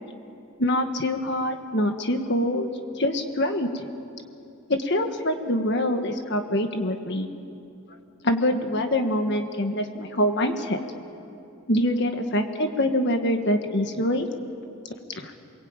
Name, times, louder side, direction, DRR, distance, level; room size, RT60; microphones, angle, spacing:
voice 1, 0.6-3.7 4.7-7.3 8.2-10.8 11.7-14.3 15.2-15.3, left 1 dB, 50° left, 6 dB, 1.6 m, -25 dB
28.5 x 21.5 x 9.0 m, 2.7 s
head